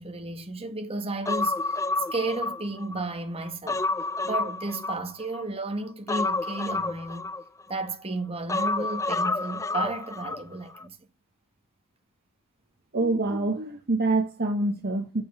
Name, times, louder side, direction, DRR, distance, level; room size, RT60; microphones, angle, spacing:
voice 1, 0.0-1.8 2.1-3.8 4.2-7.3 7.7-11.0, right 2 dB, 25° right, 1.5 m, -33 dB
Human voice, 1.3-3.0 3.4-5.4 6.1-7.8 8.5-10.4 10.7-10.8, left 3 dB, 15° left, 0.4 m, -29 dB
voice 2, 12.9-15.2, right 2 dB, 45° right, 1.1 m, -26 dB
6.8 x 5.5 x 5.6 m
head